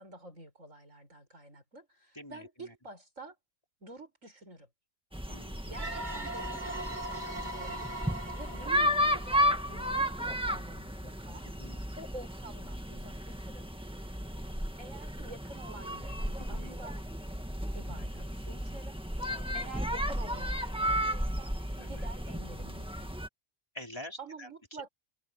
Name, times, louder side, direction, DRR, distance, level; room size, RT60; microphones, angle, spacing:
voice 1, 0.0-3.4 3.8-4.7 5.7-7.9 8.4-11.5 12.0-13.7 14.8-17.0 17.7-19.0 19.3-21.5 21.9-23.1 24.2-24.9, right 2 dB, 80° right, 7.2 m, -48 dB
voice 2, 2.1-2.7 5.3-5.6 8.5-8.6 11.4-11.9 16.4-16.8 19.3-19.5 21.8-22.1 23.7-24.5, left 1 dB, 20° left, 4.0 m, -47 dB
sound 1, 5.1-23.3, equal, 5° right, 1.7 m, -34 dB
sound 2, 5.7-10.3, right 1 dB, 35° right, 4.3 m, -40 dB
omnidirectional pair, 1.3 m